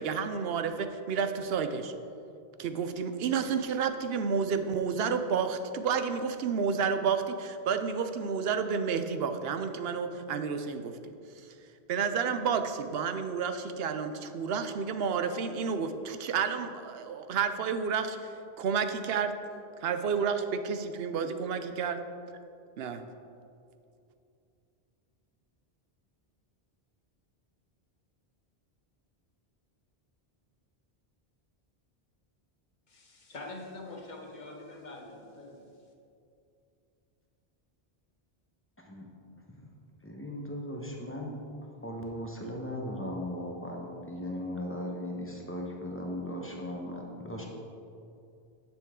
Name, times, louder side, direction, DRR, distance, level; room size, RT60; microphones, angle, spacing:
voice 1, 0.0-1.9 2.6-11.5 11.9-19.4 19.8-22.0 22.8-23.0, right 6 dB, 75° right, 9 dB, 0.8 m, -30 dB
voice 2, 32.9-35.8, left 2 dB, 50° left, 1 dB, 1.2 m, -45 dB
voice 3, 38.8-39.1 39.5-39.6 40.0-41.4 41.8-47.5, left 1 dB, 15° left, -1 dB, 1.1 m, -37 dB
10.0 x 7.0 x 3.7 m, 2.6 s
omnidirectional pair, 1.0 m